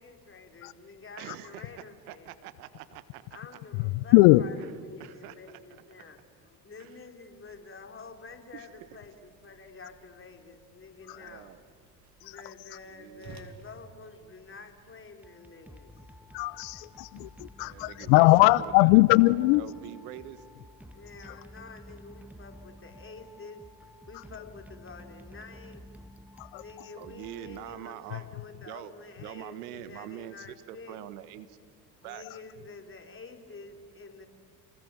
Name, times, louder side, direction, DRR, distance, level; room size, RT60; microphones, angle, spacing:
voice 1, 0.0-2.3 3.3-11.6 12.2-16.0 20.9-23.6 24.1-25.8 26.5-31.0 32.0-34.3, left 4 dB, 30° left, 4 dB, 3.9 m, -48 dB
voice 2, 1.2-1.7 2.1-3.3 4.6-4.7 5.0-5.8 6.8-6.9 8.5-8.7 11.1-11.6 12.9-13.5 17.6-18.9 19.5-20.4 27.0-28.2 28.7-28.9 29.2-31.6 32.0-32.2, right 13 dB, 80° right, 13 dB, 1.5 m, -44 dB
voice 3, 3.9-4.4 12.2-12.3 16.3-19.7 26.4-26.6, left 21 dB, 70° left, 19 dB, 0.7 m, -20 dB
Whoosh swoosh swish, 7.3-15.1, right 4 dB, 40° right, 3.2 m, -57 dB
sound 1, 15.2-28.3, equal, 5° right, 1.5 m, -51 dB
29.5 x 20.5 x 9.2 m, 2.2 s
hypercardioid pair, 70°, 44 cm